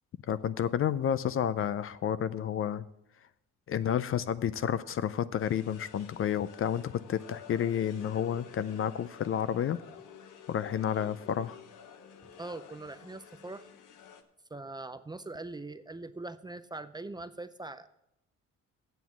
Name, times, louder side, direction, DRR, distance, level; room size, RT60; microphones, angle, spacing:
voice 1, 0.3-2.8 3.7-9.8 10.5-11.6, left 9 dB, 45° left, 15 dB, 0.4 m, -30 dB
sound 1, 5.4-14.2, left 8 dB, 85° left, 0.9 m, -51 dB
voice 2, 12.4-13.7 14.5-17.9, right 2 dB, 15° right, 11 dB, 0.5 m, -42 dB
8.0 x 7.1 x 7.2 m, 0.83 s
cardioid pair, 90°, 30 cm